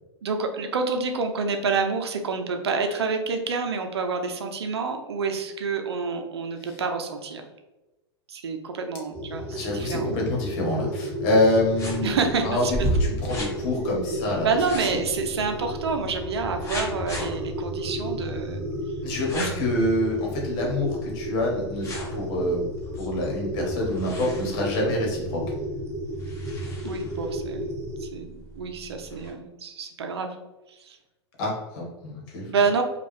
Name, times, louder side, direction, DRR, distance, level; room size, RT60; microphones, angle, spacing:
voice 1, 0.2-7.5 8.3-10.1 12.0-12.9 14.4-18.6 26.8-27.7 28.0-30.3 30.7-31.0 32.5-32.8, right 4 dB, 65° right, 5 dB, 0.7 m, -28 dB
sound 1, 9.1-28.1, equal, 15° right, 1.0 m, -33 dB
voice 2, 9.5-12.2 12.4-14.5 14.8-14.9 19.0-22.6 22.9-25.4 31.4-32.4, left 1 dB, 45° left, -1 dB, 1.5 m, -26 dB
sound 2, 11.6-29.3, equal, 20° left, 1.4 m, -36 dB
5.2 x 2.5 x 3.4 m, 1.1 s
figure-of-eight pair, 95°, 14 cm